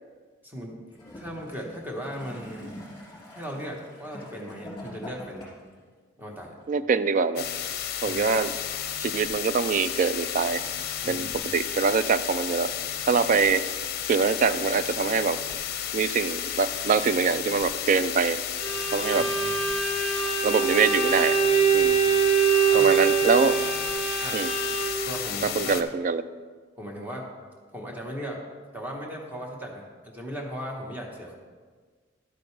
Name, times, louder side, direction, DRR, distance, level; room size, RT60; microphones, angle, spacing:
voice 1, 0.4-0.8 1.2-2.7 3.3-5.5 6.2-6.6 8.0-8.2 11.0-11.5 19.2-19.6 21.7-22.1 22.7-23.1 24.2-24.4 25.0-25.8 26.8-27.3 27.7-28.4 28.7-31.4, equal, 10° right, -1 dB, 1.2 m, -37 dB
Gurgling / Toilet flush, 0.9-5.8 6.6-6.7, left 1 dB, 20° left, 3.0 m, -44 dB
voice 2, 6.7-7.4 8.0-8.5 9.0-10.6 11.1-12.7 13.1-13.6 14.1-15.4 15.9-18.4 18.9-19.3 20.4-21.4 21.7-22.0 22.7-23.6 24.3-24.5 25.4-26.2, right 5 dB, 40° right, 13 dB, 0.3 m, -24 dB
sound 1, 7.4-25.8, left 9 dB, 55° left, 0.6 m, -32 dB
Bowed string instrument, 18.6-25.1, right 6 dB, 80° right, 1.5 m, -24 dB
12.0 x 7.8 x 3.3 m, 1.5 s
head